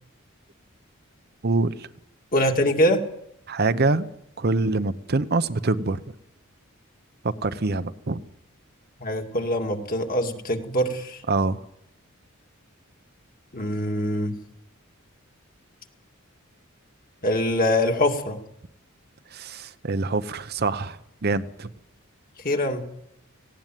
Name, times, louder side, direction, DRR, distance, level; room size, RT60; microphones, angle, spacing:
voice 1, 1.4-1.9 3.5-4.1 4.4-6.0 7.2-8.2 11.3-11.6 19.3-21.7, right 3 dB, 50° right, 12 dB, 0.8 m, -25 dB
voice 2, 2.3-3.0 9.0-11.2 13.5-14.4 17.2-18.4 22.4-22.9, left 1 dB, 40° left, 3 dB, 2.3 m, -23 dB
18.0 x 16.5 x 9.2 m, 0.79 s
head